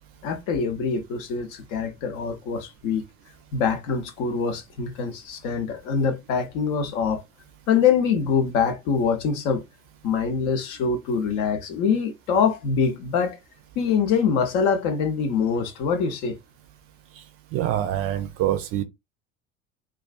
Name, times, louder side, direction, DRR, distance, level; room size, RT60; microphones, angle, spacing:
voice 1, 0.2-3.0 3.5-7.2 7.7-9.6 10.0-13.4 13.8-16.4, left 6 dB, 50° left, 0.7 m, -24 dB
voice 2, 17.5-18.8, right 12 dB, 40° right, 0.5 m, -25 dB
2.3 x 2.3 x 2.3 m
figure-of-eight pair, 65°, 38 cm